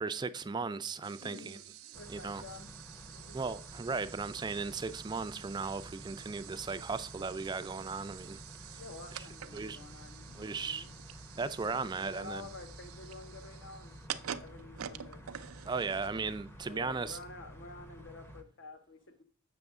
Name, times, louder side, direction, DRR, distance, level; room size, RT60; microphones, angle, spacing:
voice 1, 0.0-1.6 2.1-2.4 3.3-8.4 8.7-8.8 9.5-9.8 10.3-10.9 11.4-12.4 15.7-17.2, right 4 dB, 20° right, 0.3 m, -36 dB
sound 1, 1.0-16.4, right 10 dB, 80° right, 0.5 m, -48 dB
voice 2, 1.2-2.7 3.1-3.4 8.8-10.9 11.3-11.6 12.0-13.9 14.3-15.3 16.7-19.2, left 3 dB, 60° left, 0.8 m, -50 dB
sound 2, 1.9-18.4, equal, 10° left, 0.7 m, -51 dB
7.9 x 6.2 x 3.6 m
head